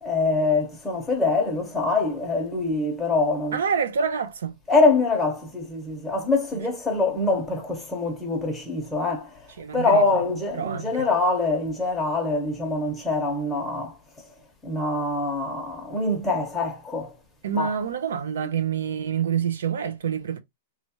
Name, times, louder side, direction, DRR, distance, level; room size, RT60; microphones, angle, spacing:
voice 1, 0.0-3.6 4.7-9.5 9.7-14.0 14.6-17.1 17.5-17.8, left 3 dB, 5° left, 0.9 m, -24 dB
voice 2, 3.5-4.6 9.6-10.0 10.5-11.1 17.4-20.4, right 7 dB, 90° right, 0.5 m, -27 dB
3.1 x 2.4 x 2.8 m
hypercardioid pair, 155°, 0 cm